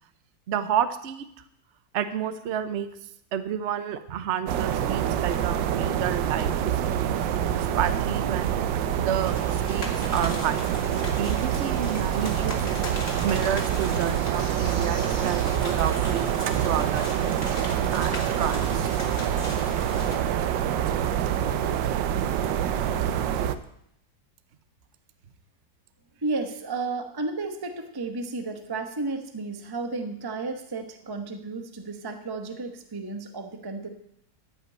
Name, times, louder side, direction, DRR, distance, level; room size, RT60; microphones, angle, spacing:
voice 1, 0.5-1.3 1.9-2.9 3.3-7.2 7.5-8.5 9.0-12.6 13.2-18.9, right 9 dB, 55° right, 11 dB, 0.8 m, -30 dB
sound 1, 4.5-23.6, right 9 dB, 85° right, 1.4 m, -26 dB
sound 2, 9.2-20.2, left 2 dB, 45° left, 2.4 m, -39 dB
voice 2, 26.2-33.9, right 3 dB, 15° right, 6 dB, 0.8 m, -33 dB
13.5 x 5.6 x 8.8 m, 0.75 s
omnidirectional pair, 2.0 m